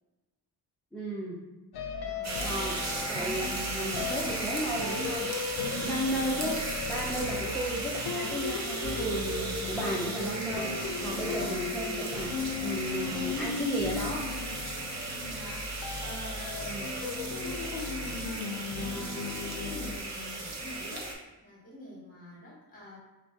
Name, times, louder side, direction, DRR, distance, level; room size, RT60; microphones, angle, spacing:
voice 1, 0.9-1.4 2.4-5.3 5.8-6.5 6.9-14.4 16.6-16.9, right 1 dB, ahead, -6 dB, 0.4 m, -34 dB
sound 1, 1.7-20.0, left 5 dB, 70° left, 0.5 m, -36 dB
voice 2, 2.0-2.5 3.1-3.6 5.6-6.1 7.0-7.3 11.0-12.2 15.0-23.0, equal, 20° left, -7 dB, 1.5 m, -45 dB
sound 2, 2.2-21.1, right 2 dB, 40° right, 0.7 m, -36 dB
5.7 x 2.2 x 2.7 m, 1.1 s
wide cardioid pair, 155°, 41 cm